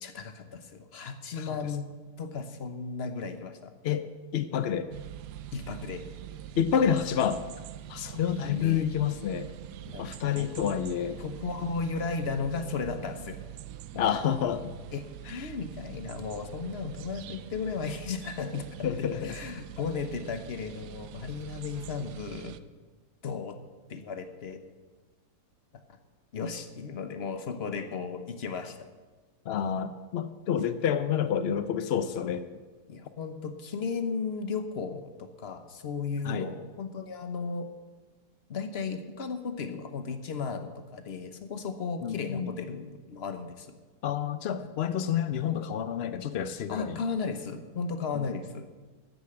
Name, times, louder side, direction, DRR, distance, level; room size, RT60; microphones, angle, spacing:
voice 1, 0.0-1.9 2.2-3.7 5.5-6.0 8.4-8.9 9.8-10.1 10.4-10.7 11.2-13.4 14.9-15.0 15.3-18.7 19.0-22.5 23.2-23.5 23.9-24.6 26.3-28.8 32.9-37.7 38.5-43.7 44.6-44.7 46.7-48.7, left 5 dB, 45° left, 8 dB, 1.0 m, -35 dB
voice 2, 4.3-4.9 6.6-7.4 7.9-9.5 10.0-11.2 13.9-14.7 15.3-15.5 18.8-19.4 29.5-32.4 36.2-36.5 42.0-42.5 44.0-47.0 48.1-48.3, left 8 dB, 90° left, 11 dB, 0.5 m, -29 dB
sound 1, 4.9-22.6, right 12 dB, 75° right, 1.1 m, -44 dB
13.5 x 7.0 x 7.8 m, 1.3 s
omnidirectional pair, 1.8 m